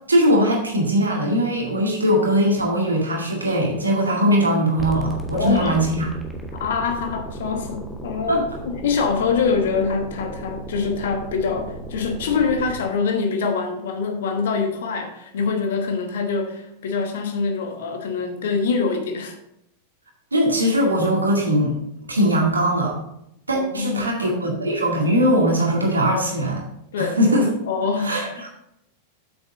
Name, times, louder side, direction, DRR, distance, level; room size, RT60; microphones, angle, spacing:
voice 1, 0.1-6.1 8.3-8.4 20.3-21.7 22.1-23.0 23.5-26.6 27.0-27.5 28.0-28.5, equal, 80° right, -1 dB, 2.1 m, -20 dB
sound 1, 4.8-12.8, right 1 dB, ahead, 1.2 m, -35 dB
voice 2, 5.3-5.9 6.5-19.4 23.5-24.2 26.9-27.4 27.7-28.2, left 5 dB, 60° left, 5 dB, 1.2 m, -24 dB
7.9 x 6.5 x 3.8 m, 0.78 s
figure-of-eight pair, 90°, 0 cm